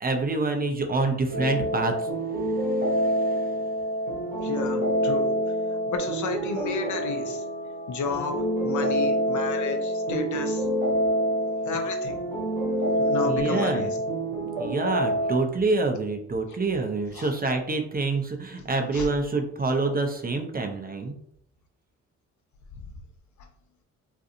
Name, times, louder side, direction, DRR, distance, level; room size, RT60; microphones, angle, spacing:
voice 1, 0.0-2.1 2.4-3.4 13.3-13.9 14.6-21.1, right 3 dB, 25° right, 4 dB, 0.6 m, -27 dB
sound 1, 1.3-15.4, equal, 80° right, 0.8 m, -27 dB
voice 2, 4.4-5.3 5.9-7.4 7.9-8.4 8.6-10.6 11.6-12.2 13.0-14.0 17.1-17.3 18.9-19.1, left 4 dB, 60° left, 4 dB, 0.7 m, -31 dB
2.5 x 2.4 x 2.7 m, 0.70 s
hypercardioid pair, 45°, 34 cm